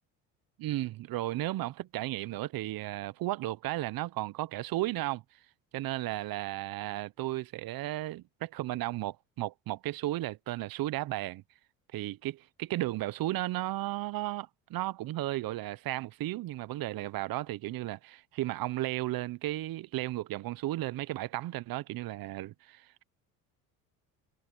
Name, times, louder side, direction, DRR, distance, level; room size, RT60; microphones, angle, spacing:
voice 1, 0.6-5.2 5.7-11.4 11.9-23.0, right 16 dB, 55° right, 1.1 m, -34 dB
hypercardioid pair, 75°, 42 cm